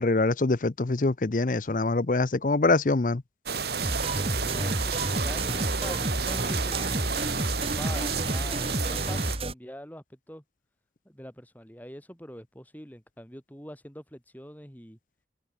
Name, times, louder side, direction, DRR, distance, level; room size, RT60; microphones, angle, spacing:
voice 1, 0.0-3.2, left 3 dB, 45° left, 0.7 m, -24 dB
sound 1, 3.5-9.4, right 5 dB, 65° right, 2.6 m, -31 dB
sound 2, 3.8-9.5, right 1 dB, 30° right, 4.4 m, -30 dB
voice 2, 4.4-7.2 7.7-10.4 11.0-15.0, equal, 10° left, 5.0 m, -44 dB
head